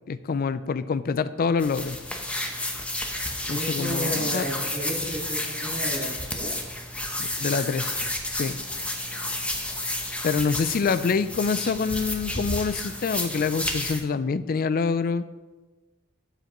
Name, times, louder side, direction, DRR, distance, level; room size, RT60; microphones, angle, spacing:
voice 1, 0.1-2.0 3.5-4.5 7.2-8.0 8.3-8.6 10.2-15.3, left 5 dB, 45° left, 14 dB, 0.4 m, -26 dB
sound 1, 1.6-14.0, left 1 dB, 5° left, 0.8 m, -31 dB
voice 2, 3.5-6.5, right 1 dB, 45° right, -9 dB, 2.1 m, -33 dB
12.0 x 8.0 x 3.0 m, 1.2 s
head